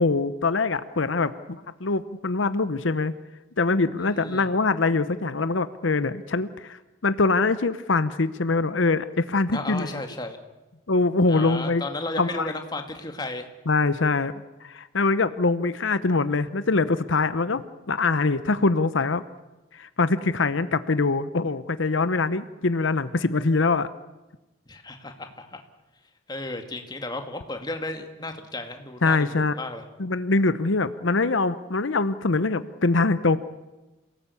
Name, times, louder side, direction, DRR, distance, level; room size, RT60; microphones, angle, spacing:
voice 1, 0.0-1.3 1.8-3.1 3.6-10.0 10.9-11.8 12.2-12.5 13.7-14.3 14.6-19.2 19.7-23.9 29.0-29.5 30.0-33.4, left 3 dB, 85° left, 13 dB, 0.9 m, -23 dB
voice 2, 4.0-4.5 9.5-10.4 11.3-13.5 24.7-25.6 26.3-29.8, left 2 dB, 20° left, 5 dB, 2.1 m, -34 dB
28.0 x 17.5 x 8.4 m, 1.1 s
head